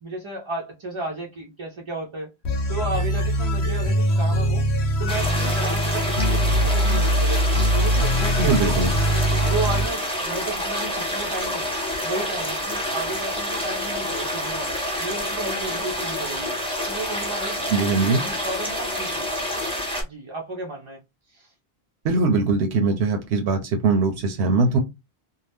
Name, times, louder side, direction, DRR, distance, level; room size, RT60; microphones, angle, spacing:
voice 1, 0.0-2.3 2.7-4.7 5.0-7.4 7.7-8.9 9.4-11.7 12.0-14.7 15.0-16.5 16.9-19.3 20.0-21.0 21.3-21.5, right 2 dB, 45° right, 0.4 m, -33 dB
sound 1, 2.4-10.0, equal, 85° left, 1.0 m, -22 dB
sound 2, 5.1-20.0, equal, 5° left, 0.7 m, -28 dB
voice 2, 8.4-8.9 17.7-18.2 22.0-24.8, right 3 dB, 85° right, 0.9 m, -21 dB
2.7 x 2.0 x 3.3 m
omnidirectional pair, 1.1 m